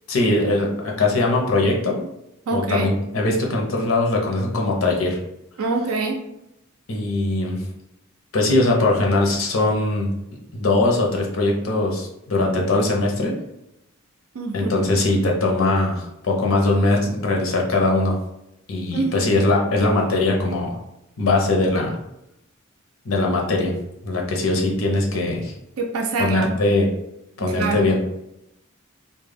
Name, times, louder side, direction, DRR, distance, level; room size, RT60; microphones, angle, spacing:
voice 1, 0.1-2.0 2.5-5.2 6.9-7.6 8.3-10.1 10.5-13.3 14.5-18.2 18.7-20.8 21.2-22.0 23.0-23.7 24.0-25.5 26.2-26.9 27.4-28.0, left 2 dB, 75° left, 0 dB, 0.6 m, -21 dB
voice 2, 2.5-2.9 5.6-6.2 14.4-14.9 18.9-19.3 25.8-26.5 27.6-27.9, right 3 dB, 90° right, 2 dB, 0.4 m, -25 dB
2.3 x 2.1 x 3.3 m, 0.83 s
head